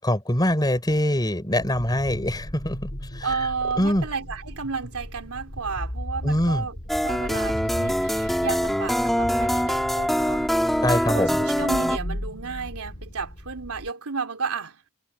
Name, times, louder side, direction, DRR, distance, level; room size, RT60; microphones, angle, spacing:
voice 1, 0.0-3.3 3.8-4.0 6.2-6.6 10.8-11.4, left 1 dB, 20° left, 4.9 m, -23 dB
sound 1, 1.5-13.9, equal, 40° left, 2.7 m, -36 dB
voice 2, 3.2-6.8 7.0-10.6 11.1-14.8, right 5 dB, 75° right, 3.4 m, -32 dB
sound 2, 6.9-12.0, equal, ahead, 2.7 m, -24 dB
head